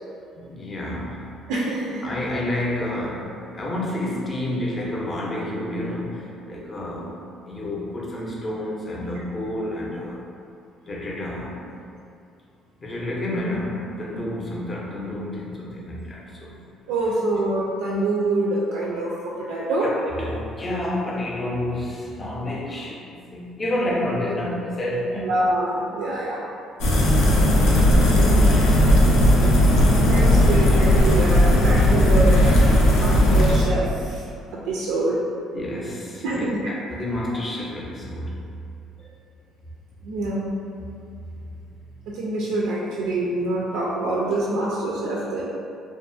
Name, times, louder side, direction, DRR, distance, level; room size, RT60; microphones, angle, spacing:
voice 1, 0.4-1.3 2.0-7.2 7.4-10.2 10.9-11.6 12.8-16.6 19.8-25.3 28.1-28.8 35.5-38.4 39.0-39.1 41.2-41.3, left 1 dB, 25° left, -4 dB, 0.5 m, -29 dB
voice 2, 1.5-2.0 16.9-19.9 25.2-26.4 30.1-32.5 32.9-34.2 34.5-35.2 36.2-36.7 40.0-40.5 42.1-45.4, right 2 dB, 85° right, -4 dB, 0.3 m, -25 dB
sound 1, 26.8-33.6, left 1 dB, 90° left, 0.4 m, -16 dB
2.6 x 2.3 x 2.5 m, 2.5 s
cardioid pair, 115°, 0 cm